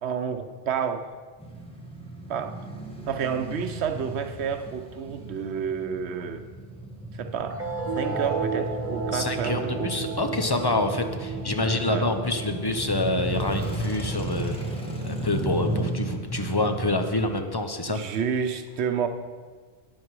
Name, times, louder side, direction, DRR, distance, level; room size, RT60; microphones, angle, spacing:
voice 1, 0.0-1.1 2.3-2.6 3.1-6.4 7.1-7.6 8.0-10.1 11.9-12.1 17.9-19.1, right 7 dB, 85° right, 8 dB, 1.0 m, -30 dB
Male speech man speaking / Motorcycle / Idling, 1.4-17.4, right 2 dB, 5° left, 1.4 m, -34 dB
sound 1, 7.5-14.5, right 4 dB, 45° right, 1.4 m, -34 dB
voice 2, 9.1-14.6 15.0-18.0, left 2 dB, 25° left, 6 dB, 0.6 m, -27 dB
11.0 x 9.4 x 4.8 m, 1.5 s
omnidirectional pair, 1.1 m